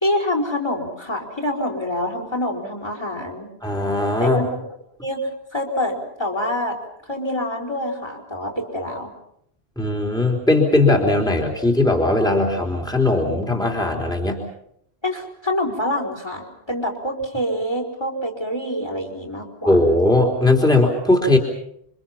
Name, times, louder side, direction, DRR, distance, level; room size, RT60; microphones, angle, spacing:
voice 1, 0.0-3.5 4.2-4.5 5.0-6.8 7.1-9.1 15.0-19.8, left 1 dB, 25° left, 1 dB, 4.4 m, -26 dB
voice 2, 3.6-4.4 9.8-14.4 19.6-21.4, left 2 dB, 5° left, 0 dB, 3.6 m, -18 dB
28.5 x 25.5 x 5.8 m, 0.71 s
omnidirectional pair, 1.1 m